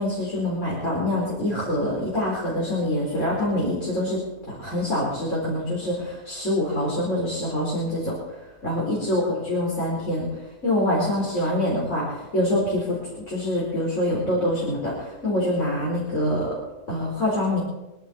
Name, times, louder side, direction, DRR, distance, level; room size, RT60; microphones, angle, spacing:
voice 1, 0.0-4.2 4.5-8.1 8.6-10.3 10.6-13.0 13.3-16.5 16.9-17.6, left 1 dB, 70° left, -5 dB, 5.0 m, -25 dB
25.5 x 11.0 x 4.3 m, 1.0 s
omnidirectional pair, 1.4 m